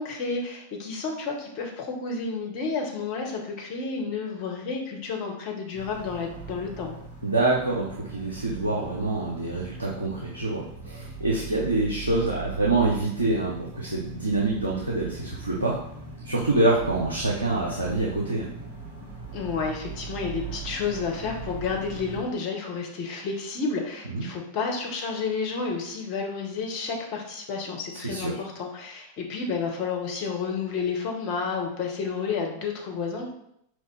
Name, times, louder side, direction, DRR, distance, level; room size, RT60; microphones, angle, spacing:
voice 1, 0.0-7.0 19.3-33.3, left 4 dB, 40° left, 1 dB, 1.0 m, -31 dB
sound 1, 5.7-22.3, right 3 dB, 50° right, 1.7 m, -40 dB
voice 2, 7.2-15.8 16.2-18.5 24.1-24.3 28.0-28.4, right 2 dB, 85° right, -5 dB, 0.7 m, -26 dB
4.4 x 3.1 x 3.2 m, 0.75 s
figure-of-eight pair, 90°, 0 cm